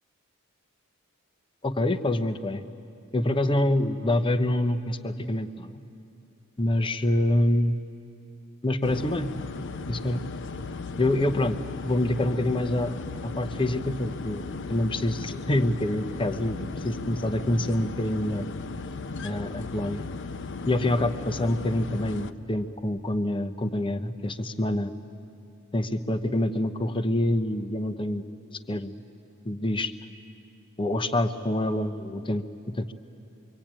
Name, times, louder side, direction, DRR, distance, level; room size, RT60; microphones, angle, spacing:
voice 1, 1.6-2.6 3.1-5.8 6.6-7.8 8.6-9.3 9.9-10.2 11.0-11.6 11.8-13.0 13.2-18.5 19.2-20.0 20.7-24.9 25.7-28.2 28.7-28.9 29.4-29.9 30.8-32.4 32.7-32.9, left 1 dB, 25° left, 9 dB, 0.9 m, -26 dB
sound 1, 8.8-22.3, left 3 dB, 55° left, 0.7 m, -36 dB
24.5 x 24.0 x 8.9 m, 2.7 s
head